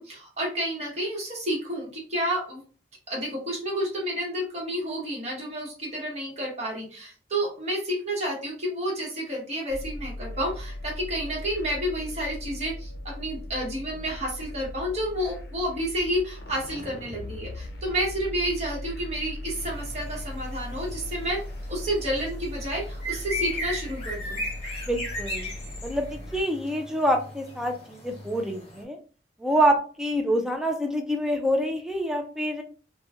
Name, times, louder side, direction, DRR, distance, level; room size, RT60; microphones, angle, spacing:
voice 1, 0.0-2.6 3.1-21.4 21.7-24.4, equal, 40° right, -3 dB, 1.1 m, -30 dB
sound 1, 9.7-26.4, left 1 dB, 65° left, 0.5 m, -38 dB
sound 2, 19.6-28.8, left 1 dB, 35° left, 1.1 m, -37 dB
voice 2, 24.9-25.5 25.8-29.0 29.4-32.6, equal, 5° right, 3 dB, 0.4 m, -26 dB
3.0 x 2.2 x 2.3 m, 0.38 s
head